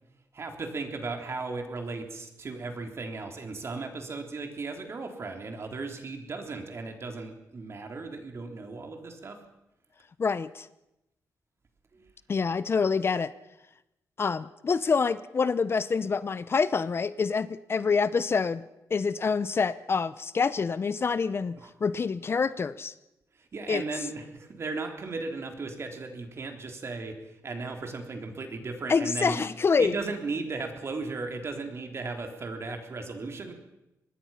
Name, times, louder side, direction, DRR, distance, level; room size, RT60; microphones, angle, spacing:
voice 1, 0.3-9.4 11.9-12.0 21.6-21.7 23.4-29.5 29.8-33.5, right 3 dB, 45° right, 4 dB, 3.6 m, -36 dB
voice 2, 10.2-10.7 12.3-13.3 14.2-18.6 18.9-22.9 23.7-23.8 28.9-30.0, left 5 dB, 40° left, 15 dB, 0.7 m, -26 dB
25.0 x 20.0 x 5.8 m, 0.92 s
cardioid pair, 105°, 6 cm